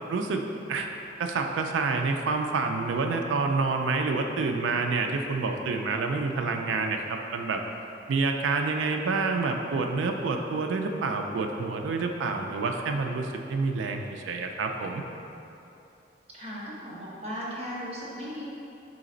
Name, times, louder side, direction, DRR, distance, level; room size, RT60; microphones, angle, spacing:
voice 1, 0.1-0.4 0.7-0.9 1.2-7.6 8.1-15.0, right 4 dB, 85° right, 4 dB, 0.3 m, -28 dB
voice 2, 16.3-18.4, equal, 35° right, -7 dB, 0.9 m, -37 dB
4.0 x 3.2 x 3.8 m, 2.8 s
head